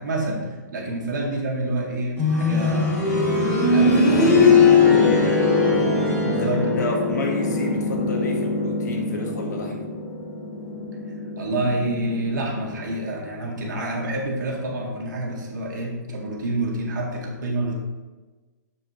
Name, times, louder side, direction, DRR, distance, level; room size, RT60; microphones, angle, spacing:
voice 1, 0.0-3.4 3.7-6.8 11.4-17.7, right 1 dB, 75° right, -1 dB, 2.1 m, -28 dB
sound 1, 2.2-12.9 13.2-13.3 14.2-14.3, left 3 dB, 20° left, 2.1 m, -21 dB
voice 2, 3.8-5.1 6.3-9.8, left 2 dB, 65° left, 2 dB, 1.6 m, -30 dB
7.5 x 6.7 x 3.1 m, 1.3 s
hypercardioid pair, 175°, 10 cm